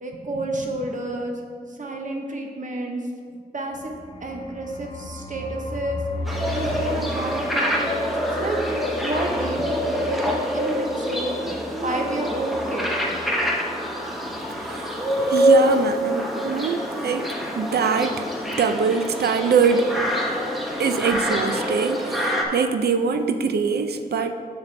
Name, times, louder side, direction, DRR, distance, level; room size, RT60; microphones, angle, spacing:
voice 1, 0.0-1.4 1.7-3.0 3.5-3.9 4.2-6.0 6.5-8.6 8.9-11.6 11.8-13.2, right 1 dB, 50° right, 2 dB, 0.7 m, -30 dB
sound 1, 3.7-13.5 13.7-13.9 14.1-14.6, equal, 30° left, 0.6 m, -37 dB
sound 2, 6.3-22.4, equal, ahead, 0.8 m, -25 dB
voice 2, 14.5-20.1 20.8-24.3, right 5 dB, 85° right, 8 dB, 0.4 m, -23 dB
7.6 x 6.1 x 3.2 m, 2.2 s
wide cardioid pair, 120°, 16 cm